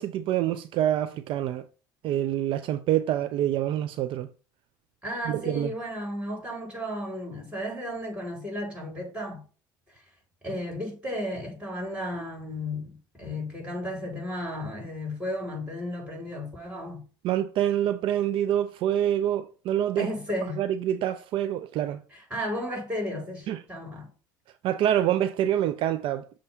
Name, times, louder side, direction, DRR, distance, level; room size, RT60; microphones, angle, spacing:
voice 1, 0.0-1.6 2.0-4.3 5.3-5.7 17.2-20.1 20.6-22.0 23.5-23.6 24.6-26.4, right 11 dB, 55° right, 0.4 m, -26 dB
voice 2, 5.0-9.4 10.4-17.0 20.0-20.6 22.1-24.1, left 1 dB, 10° right, 3.2 m, -34 dB
6.7 x 2.5 x 5.6 m
hypercardioid pair, 75°, 11 cm